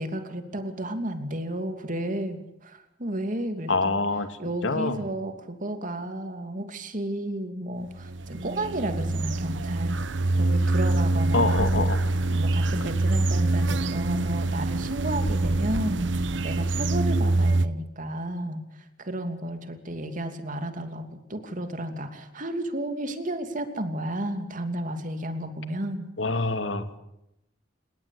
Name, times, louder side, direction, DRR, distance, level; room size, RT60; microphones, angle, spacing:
voice 1, 0.0-4.0 4.4-10.0 10.4-11.9 12.3-18.6 19.0-26.1, right 1 dB, 45° right, 7 dB, 2.9 m, -32 dB
voice 2, 3.7-4.3 4.6-5.0 11.3-12.0 26.2-27.0, left 3 dB, 90° left, 9 dB, 2.5 m, -25 dB
sound 1, 8.0-17.7, right 2 dB, 75° right, 1.1 m, -25 dB
29.5 x 18.0 x 8.6 m, 0.86 s
head